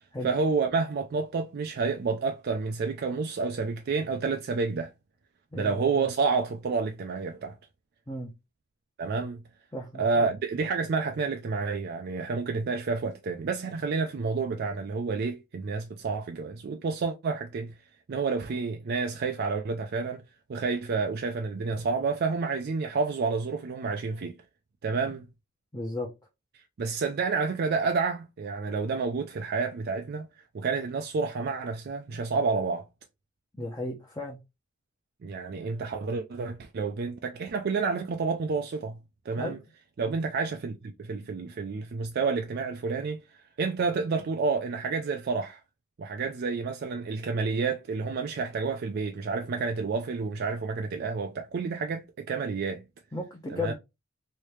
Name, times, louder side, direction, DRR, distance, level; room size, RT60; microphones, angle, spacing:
voice 1, 0.2-4.9 5.5-7.6 9.0-9.4 10.0-17.7 18.1-20.2 20.5-24.4 24.8-25.3 26.5-30.3 30.5-32.9 35.2-39.0 39.3-39.6 40.0-45.6 46.0-52.8 53.5-53.7, right 4 dB, 50° right, 0.4 m, -29 dB
voice 2, 5.5-6.1 8.1-8.3 9.7-10.3 25.7-26.1 33.5-34.4 39.4-39.6 53.1-53.7, left 2 dB, 20° left, 0.7 m, -35 dB
3.2 x 2.7 x 3.1 m
head